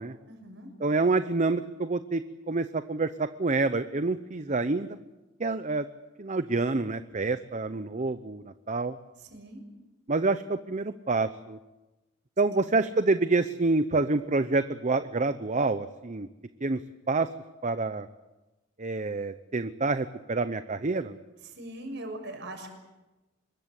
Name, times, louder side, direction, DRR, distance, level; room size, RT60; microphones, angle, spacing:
voice 1, 0.3-0.7 9.2-9.6 12.6-12.7 21.4-22.7, right 1 dB, 60° right, 5 dB, 6.4 m, -41 dB
voice 2, 0.8-2.2 2.5-5.0 5.4-5.8 6.2-9.0 10.1-11.6 12.4-16.3 16.6-16.8 17.1-17.3 17.6-18.1 18.8-21.2, right 3 dB, 40° right, 11 dB, 0.8 m, -27 dB
25.5 x 22.0 x 8.3 m, 1.1 s
head